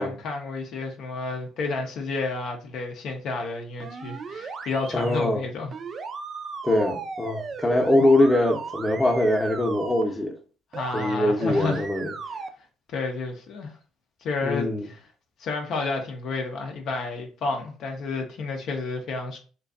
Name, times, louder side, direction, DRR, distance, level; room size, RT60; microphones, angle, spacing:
voice 1, 0.0-5.7 10.7-11.8 12.9-13.8 14.2-15.0 15.4-19.4, left 3 dB, 65° left, 0.5 m, -31 dB
sound 1, 3.8-5.3 5.7-10.0 10.7-11.1 11.4-12.5, right 5 dB, 45° right, 0.3 m, -36 dB
voice 2, 4.9-5.4 6.6-10.3 10.9-12.1 14.4-14.9, left 1 dB, 15° left, 0.6 m, -22 dB
2.5 x 2.2 x 2.3 m
supercardioid pair, 70°, 0 cm